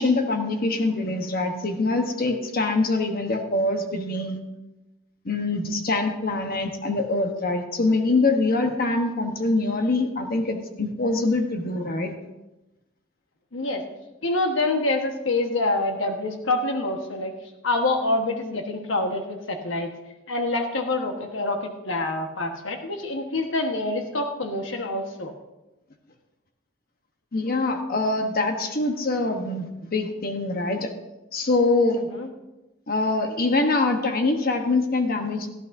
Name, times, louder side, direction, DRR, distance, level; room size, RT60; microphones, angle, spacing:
voice 1, 0.0-4.4 5.2-12.1 27.3-30.9 31.3-32.0 32.9-35.5, left 2 dB, 50° left, 4 dB, 1.1 m, -24 dB
voice 2, 13.5-13.8 14.2-17.3 17.6-19.9 20.3-25.3 32.1-32.3, left 2 dB, 75° left, 4 dB, 1.3 m, -26 dB
18.0 x 13.0 x 2.7 m, 1.0 s
head